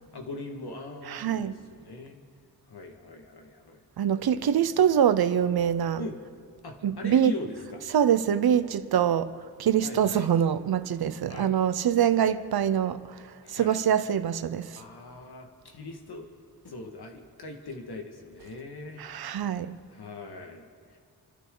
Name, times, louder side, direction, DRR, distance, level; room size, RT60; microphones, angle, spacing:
voice 1, 0.1-2.2 2.7-3.8 6.0-6.2 6.6-7.9 9.8-10.3 11.3-11.5 13.4-13.8 14.8-16.3 16.6-19.0 19.9-21.0, left 2 dB, 80° left, 1.8 m, -40 dB
voice 2, 1.1-1.5 4.0-6.0 6.8-7.3 7.9-14.8 19.0-19.8, right 9 dB, 75° right, 0.7 m, -24 dB
28.0 x 12.5 x 3.9 m
wide cardioid pair, 155°, 38 cm